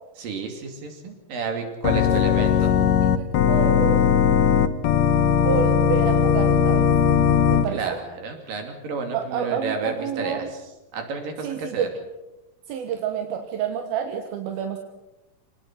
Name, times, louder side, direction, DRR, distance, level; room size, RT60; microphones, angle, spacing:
voice 1, 0.2-2.7 7.7-10.5 10.9-11.9, right 4 dB, 65° right, 4 dB, 4.3 m, -31 dB
Organ, 1.8-7.7, left 7 dB, 70° left, 2.3 m, -19 dB
voice 2, 2.4-4.0 5.4-6.9 7.5-8.0 9.1-10.5 11.4-11.9 12.7-14.8, right 7 dB, 85° right, 5 dB, 3.2 m, -29 dB
26.0 x 19.0 x 5.9 m, 0.98 s
omnidirectional pair, 4.2 m